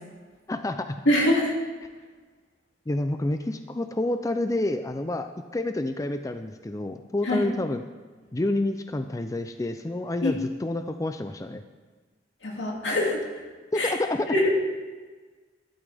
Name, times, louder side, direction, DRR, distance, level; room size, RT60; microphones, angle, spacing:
voice 1, 0.5-1.0 2.9-5.3 5.5-7.8 8.3-11.6 13.7-14.3, left 2 dB, 20° left, 8 dB, 0.4 m, -28 dB
voice 2, 1.1-1.5 7.3-7.4 10.2-10.3 12.4-13.2 13.8-13.9 14.3-14.5, left 1 dB, 85° left, -2 dB, 2.5 m, -23 dB
12.0 x 12.0 x 3.5 m, 1.4 s
head